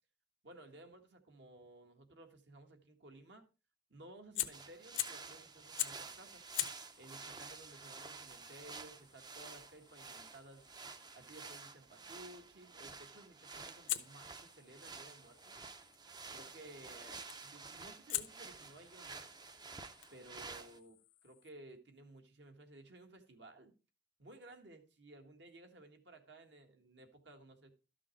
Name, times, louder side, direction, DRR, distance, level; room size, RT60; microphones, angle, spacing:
voice 1, 0.4-3.4 3.9-6.5 7.0-10.7 11.1-15.5 16.3-19.3 20.1-23.7 24.2-27.7, right 2 dB, 65° right, 5 dB, 1.7 m, -56 dB
Fire, 4.2-5.3 5.8-6.1 6.5-11.4 13.9-16.0 17.3-17.6 18.1-21.5, left 14 dB, 85° left, 0.9 m, -45 dB
sound 1, 4.5-20.8, right 4 dB, 20° right, 0.6 m, -51 dB
12.5 x 6.1 x 4.5 m, 0.31 s
head